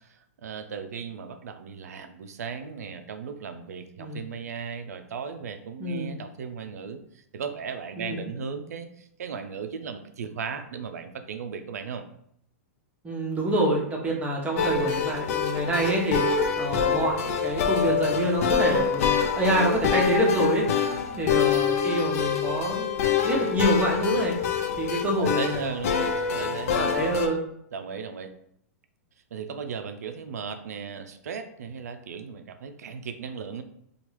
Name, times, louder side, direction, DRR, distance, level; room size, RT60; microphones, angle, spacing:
voice 1, 0.0-12.0 21.1-21.3 25.2-27.0 27.7-28.3 29.3-33.6, right 6 dB, 75° right, 8 dB, 0.4 m, -36 dB
voice 2, 5.8-6.2 8.0-8.2 13.0-20.7 21.2-24.4 24.8-25.7 26.7-27.4, right 1 dB, 15° right, -1 dB, 0.8 m, -26 dB
sound 1, 14.6-27.3, left 6 dB, 65° left, 0.4 m, -26 dB
2.8 x 2.3 x 3.0 m, 0.70 s
hypercardioid pair, 110°, 8 cm